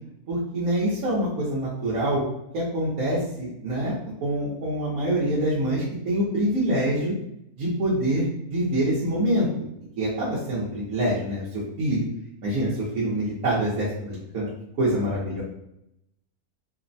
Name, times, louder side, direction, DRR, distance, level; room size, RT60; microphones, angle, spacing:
voice 1, 0.3-2.2 2.5-3.9 4.2-7.1 7.6-8.2 8.5-9.5 10.0-12.0 12.4-12.7 12.9-14.5 14.8-15.4, right 1 dB, 65° right, -9 dB, 1.1 m, -25 dB
3.1 x 2.0 x 2.5 m, 0.79 s
omnidirectional pair, 1.7 m